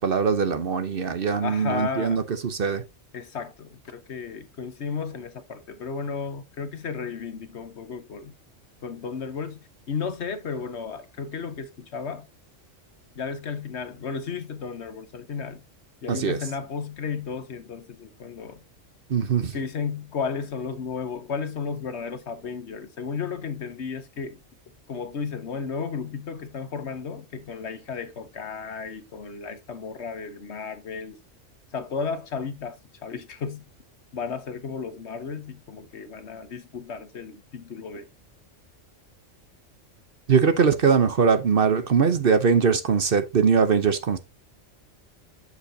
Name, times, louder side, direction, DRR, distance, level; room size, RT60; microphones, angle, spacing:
voice 1, 0.0-2.8 16.1-16.4 19.1-19.6 40.3-44.2, right 6 dB, 50° right, 1.0 m, -21 dB
voice 2, 1.4-2.2 3.1-8.4 8.8-9.6 9.9-12.3 13.1-15.6 16.0-18.6 19.5-24.4 24.9-31.2 31.7-32.8 33.0-33.7 34.1-38.1, left 5 dB, 60° left, 1.3 m, -33 dB
7.9 x 6.7 x 2.7 m
omnidirectional pair, 1.3 m